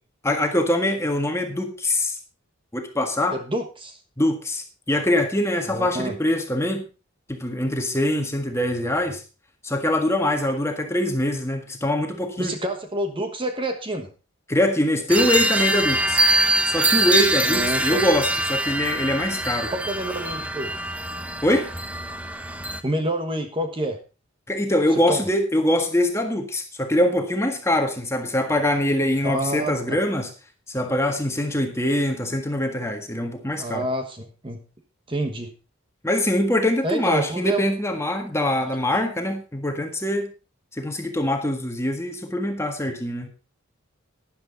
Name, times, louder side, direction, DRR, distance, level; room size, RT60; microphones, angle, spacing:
voice 1, 0.2-2.2 2.7-3.4 4.2-6.8 7.3-9.2 9.6-12.5 14.5-16.2 16.6-19.7 21.4-21.7 24.5-30.3 30.7-33.9 36.0-40.3 40.7-43.3, left 1 dB, 15° left, 5 dB, 1.6 m, -23 dB
voice 2, 3.3-4.0 5.7-6.2 12.4-14.1 17.4-18.0 19.7-20.7 22.8-24.0 24.9-25.3 29.2-30.0 33.6-34.6 35.1-35.5 36.8-37.6, right 1 dB, 25° right, 6 dB, 1.2 m, -28 dB
sound 1, 15.1-22.8, right 1 dB, 5° right, 0.9 m, -23 dB
12.5 x 10.5 x 3.9 m, 0.32 s
head